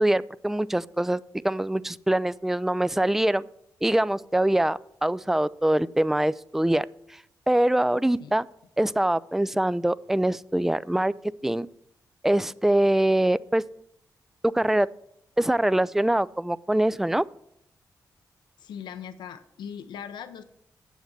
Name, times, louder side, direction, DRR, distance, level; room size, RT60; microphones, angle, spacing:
voice 1, 0.0-3.4 3.8-6.9 7.5-8.5 8.8-11.1 11.4-11.7 12.2-13.6 14.5-14.9 15.4-17.2, right 1 dB, 5° right, 18 dB, 0.3 m, -23 dB
voice 2, 18.6-20.4, left 8 dB, 90° left, 10 dB, 0.6 m, -39 dB
7.5 x 7.2 x 6.8 m, 0.77 s
cardioid pair, 50°, 7 cm